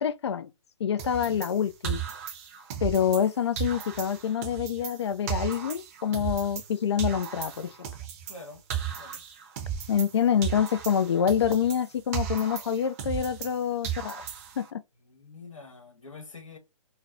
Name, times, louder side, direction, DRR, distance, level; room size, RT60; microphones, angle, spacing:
voice 1, 0.0-0.5 0.8-2.0 2.8-7.7 9.9-14.3 14.6-14.8, left 8 dB, 55° left, 0.4 m, -26 dB
sound 1, 1.0-3.3 3.6-6.7 7.0-10.2 10.4-13.6 13.8-14.7, right 9 dB, 25° right, 0.6 m, -35 dB
voice 2, 8.3-8.6 9.0-9.2 15.0-16.6, left 3 dB, 75° left, 1.3 m, -46 dB
4.0 x 2.1 x 2.6 m
figure-of-eight pair, 135°, 17 cm